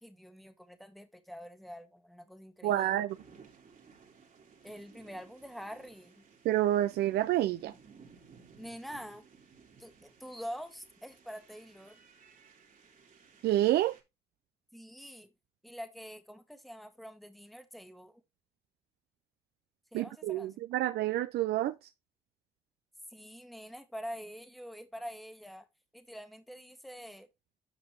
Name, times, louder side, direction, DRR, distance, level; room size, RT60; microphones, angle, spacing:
voice 1, 0.0-3.0 4.6-6.2 8.6-9.3 9.8-12.0 14.7-15.3 15.6-18.2 19.9-20.6 23.1-25.7 25.9-27.3, equal, ahead, 1.3 m, -46 dB
voice 2, 2.6-3.2 6.4-7.7 13.4-14.0 19.9-21.8, right 13 dB, 80° right, 0.4 m, -28 dB
sound 1, 3.1-14.0, right 5 dB, 55° right, 2.1 m, -58 dB
8.3 x 5.2 x 3.3 m
supercardioid pair, 60°, 17 cm